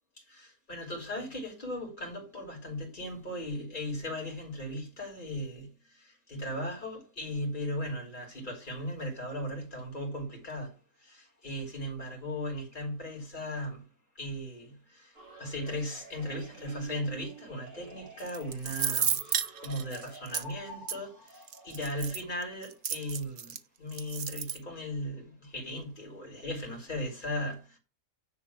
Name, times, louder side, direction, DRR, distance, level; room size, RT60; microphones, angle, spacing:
voice 1, 0.3-13.9 14.1-27.8, equal, 35° left, 3.1 m, -37 dB
sound 1, 15.1-22.2, right 3 dB, 80° right, 5.5 m, -50 dB
sound 2, 18.2-20.4 20.9-21.0 21.5-23.6 23.9-24.6, right 8 dB, 55° right, 0.6 m, -32 dB
9.9 x 3.6 x 7.1 m
omnidirectional pair, 1.5 m